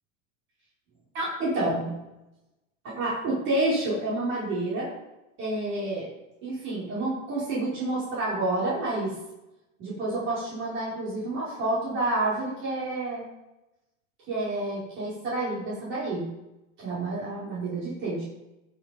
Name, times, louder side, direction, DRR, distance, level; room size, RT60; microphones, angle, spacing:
voice 1, 1.1-1.9 2.8-4.9 5.4-6.1 6.4-9.1 9.8-13.3 14.3-16.2 16.8-18.2, right 2 dB, 30° right, -7 dB, 5.1 m, -29 dB
20.0 x 7.1 x 5.2 m, 0.96 s
supercardioid pair, 155°, 38 cm